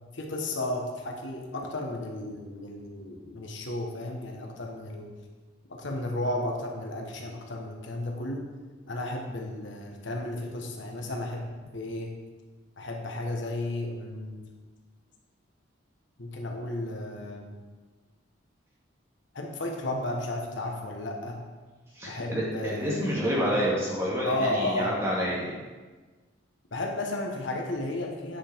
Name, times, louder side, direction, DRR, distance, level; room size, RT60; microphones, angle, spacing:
voice 1, 0.1-5.1 5.7-8.4 8.9-12.1 12.8-14.4 16.2-17.5 19.3-21.4 22.1-23.2 24.2-25.0 26.7-28.4, left 1 dB, 70° left, 1 dB, 1.2 m, -33 dB
voice 2, 21.9-25.5, equal, 15° right, -6 dB, 2.0 m, -28 dB
9.6 x 5.4 x 4.5 m, 1.3 s
head